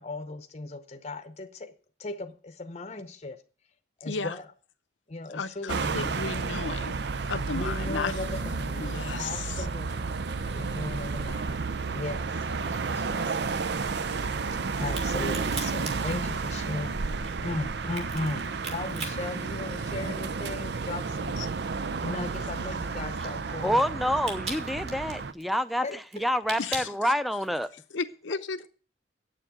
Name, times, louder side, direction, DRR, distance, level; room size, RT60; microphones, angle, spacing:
voice 1, 0.0-1.7 2.0-3.4 4.0-4.5 5.1-6.4 7.5-10.2 10.5-11.7 11.9-13.4 14.8-17.1 17.4-21.4 22.0-23.8 25.8-26.0, left 2 dB, 35° left, 0.8 m, -37 dB
voice 2, 5.3-6.9 7.3-8.1 8.8-9.6 21.4-21.5 26.6-26.9 27.9-28.7, left 4 dB, 85° left, 0.8 m, -34 dB
sound 1, 5.7-25.3, right 4 dB, 60° right, 0.6 m, -32 dB
Crack, 14.8-20.3 20.7-27.7, right 3 dB, 35° right, 2.8 m, -41 dB
voice 3, 23.6-25.8 26.2-27.7, equal, ahead, 0.6 m, -27 dB
8.8 x 7.1 x 8.8 m
head